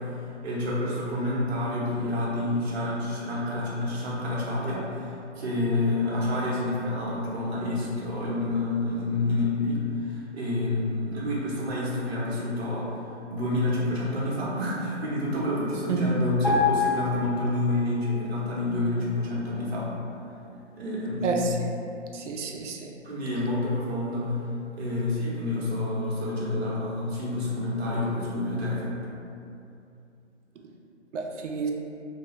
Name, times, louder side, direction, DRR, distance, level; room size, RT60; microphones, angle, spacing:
voice 1, 0.0-13.0 13.3-19.9 20.8-21.5 23.0-24.4 24.8-28.9, left 2 dB, 60° right, -5 dB, 0.9 m, -28 dB
sound 1, 16.4-18.1 18.3-18.6, left 4 dB, 15° right, 0.5 m, -27 dB
voice 2, 21.2-21.5 22.1-22.9 31.1-31.7, right 4 dB, 80° right, 2 dB, 0.5 m, -29 dB
2.4 x 2.2 x 2.9 m, 2.6 s
hypercardioid pair, 160°, 36 cm